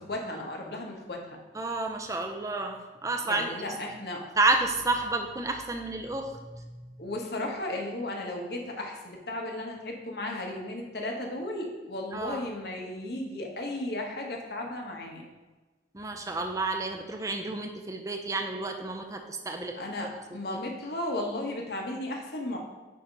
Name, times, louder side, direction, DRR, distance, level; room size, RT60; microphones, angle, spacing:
voice 1, 0.0-1.4 3.2-4.3 7.0-15.3 19.8-22.6, left 1 dB, 60° left, 1 dB, 1.1 m, -35 dB
voice 2, 1.5-3.7 4.4-7.0 12.1-12.4 15.9-19.8 20.5-20.6, right 2 dB, 20° right, 3 dB, 0.5 m, -30 dB
8.5 x 2.9 x 5.1 m, 1.2 s
head